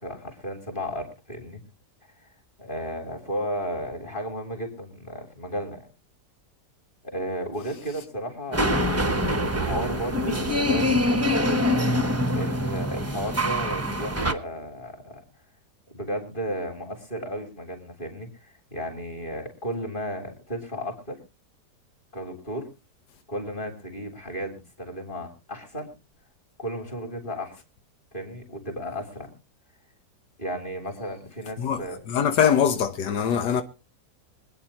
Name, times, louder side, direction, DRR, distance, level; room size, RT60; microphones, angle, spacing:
voice 1, 0.0-1.6 2.6-5.9 7.0-9.1 9.6-11.7 12.3-15.2 15.9-21.2 22.1-22.7 23.3-25.9 26.6-27.6 28.1-29.3 30.4-32.0 32.6-33.0, equal, 30° left, 3.9 m, -34 dB
sound 1, 8.5-14.3, left 1 dB, 10° right, 0.8 m, -24 dB
voice 2, 32.1-33.6, left 8 dB, 90° left, 1.7 m, -22 dB
25.0 x 9.5 x 3.0 m
omnidirectional pair, 1.8 m